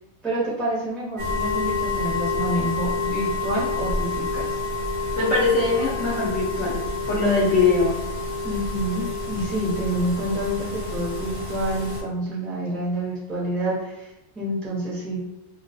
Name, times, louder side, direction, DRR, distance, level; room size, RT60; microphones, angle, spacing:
voice 1, 0.2-4.6 8.4-15.2, right 1 dB, ahead, -8 dB, 0.5 m, -28 dB
sound 1, 1.2-12.0, left 2 dB, 55° right, 0.8 m, -28 dB
voice 2, 5.2-7.9, left 3 dB, 60° left, -6 dB, 0.7 m, -22 dB
2.3 x 2.3 x 2.5 m, 0.98 s
omnidirectional pair, 1.6 m